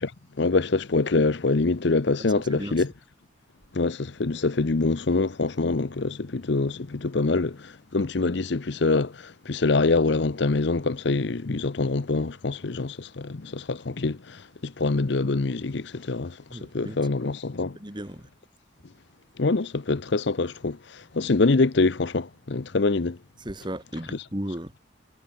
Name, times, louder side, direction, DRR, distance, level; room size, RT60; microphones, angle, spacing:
voice 1, 0.4-2.9 3.7-17.8 19.4-23.2, left 3 dB, 60° left, 0.7 m, -25 dB
voice 2, 2.5-2.8 16.5-17.0 17.7-18.3 23.4-24.8, right 1 dB, 25° right, 2.6 m, -35 dB
head